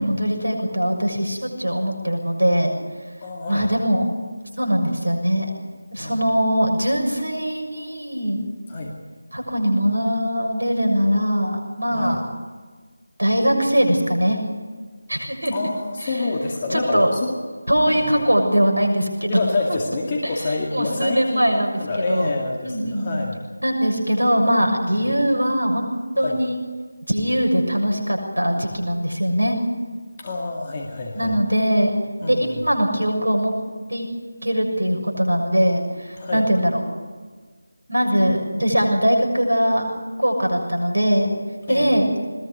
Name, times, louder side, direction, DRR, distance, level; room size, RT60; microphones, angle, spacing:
voice 1, 0.0-2.7 3.5-4.1 4.6-5.5 5.9-8.4 9.3-12.2 13.2-14.4 15.1-15.5 16.0-16.1 16.7-17.1 17.7-19.4 19.7-19.8 20.2-20.3 20.7-22.3 22.6-23.2 23.6-26.6 27.1-29.6 31.1-31.9 32.3-33.5 33.9-34.1 34.4-36.8 37.9-39.9 40.2-41.3 41.7-42.1, equal, 90° right, 3 dB, 6.8 m, -21 dB
voice 2, 3.2-3.7 6.0-6.1 8.7-8.9 11.9-12.2 15.5-17.4 17.9-18.3 19.3-23.4 24.9-25.1 26.2-26.4 30.2-31.3 32.2-32.6 36.2-36.4 41.7-42.0, left 3 dB, 30° left, -1 dB, 2.1 m, -27 dB
21.0 x 20.0 x 6.6 m, 1.5 s
figure-of-eight pair, 165°, 0 cm